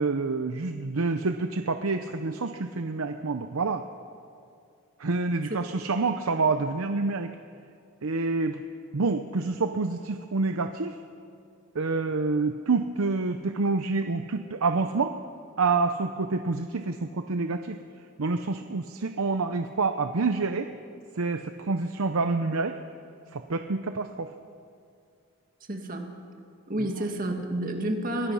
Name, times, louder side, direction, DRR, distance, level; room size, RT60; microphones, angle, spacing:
voice 1, 0.0-3.8 5.0-7.3 8.0-8.6 8.9-11.0 11.7-15.2 15.6-17.8 18.2-20.7 21.1-22.8 23.3-24.3 26.8-26.9, right 3 dB, 80° right, 8 dB, 0.7 m, -27 dB
voice 2, 25.7-26.2 26.7-28.3, right 1 dB, 40° right, 3 dB, 2.1 m, -30 dB
24.0 x 19.0 x 5.7 m, 2.4 s
head